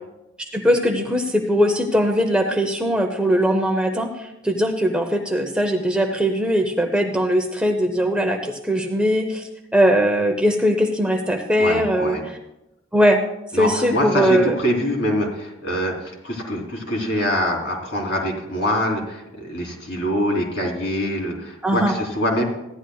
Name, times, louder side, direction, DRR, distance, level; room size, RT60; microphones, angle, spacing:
voice 1, 0.5-12.2 12.9-13.2 13.5-14.5 21.6-21.9, equal, 5° right, 3 dB, 0.6 m, -20 dB
voice 2, 11.6-12.2 13.5-22.4, equal, 60° left, -1 dB, 3.1 m, -24 dB
15.5 x 11.0 x 2.3 m, 0.89 s
head